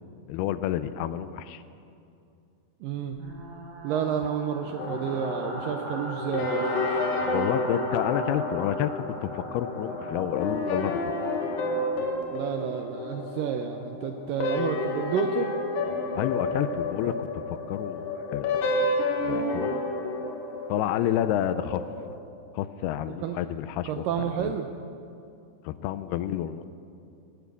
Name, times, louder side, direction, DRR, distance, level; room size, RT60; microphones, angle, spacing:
voice 1, 0.3-1.6 7.3-11.0 16.2-18.6 19.2-19.8 20.7-21.8 22.5-24.5 25.6-26.6, left 11 dB, 80° left, 13 dB, 2.4 m, -29 dB
voice 2, 2.8-3.2 3.8-6.7 12.3-15.5 23.2-23.4 23.9-24.7, right 8 dB, 80° right, 5 dB, 2.0 m, -30 dB
sound 1, 3.1-12.0, right 1 dB, 60° right, 3.7 m, -39 dB
sound 2, 4.8-22.2, left 2 dB, 65° left, 2.9 m, -30 dB
18.5 x 9.2 x 8.3 m, 2.5 s
omnidirectional pair, 4.7 m